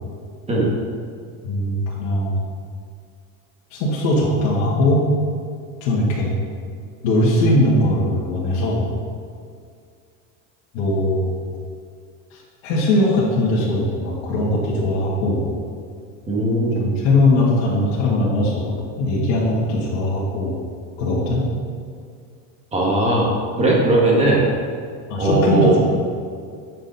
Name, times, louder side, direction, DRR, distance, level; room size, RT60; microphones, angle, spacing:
voice 1, 1.4-2.4 3.7-5.1 5.8-6.3 7.0-8.9 10.7-11.3 12.3-15.5 16.8-20.6 21.0-21.5 25.1-26.0, left 1 dB, 80° left, -6 dB, 1.9 m, -20 dB
voice 2, 16.3-16.8 22.7-23.3 23.6-24.5 25.2-25.8, right 2 dB, 15° right, -3 dB, 1.8 m, -18 dB
8.9 x 6.0 x 4.1 m, 2.2 s
cardioid pair, 145°, 37 cm